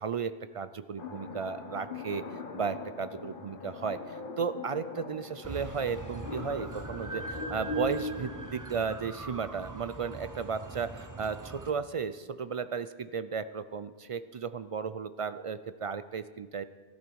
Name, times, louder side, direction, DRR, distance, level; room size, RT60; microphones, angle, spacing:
voice 1, 0.0-16.6, right 6 dB, 55° right, 13 dB, 0.3 m, -35 dB
sound 1, 1.0-8.5, left 2 dB, 55° left, 1.2 m, -40 dB
sound 2, 5.4-11.7, right 3 dB, 20° right, 0.7 m, -42 dB
15.0 x 12.5 x 4.6 m, 1.4 s
omnidirectional pair, 1.1 m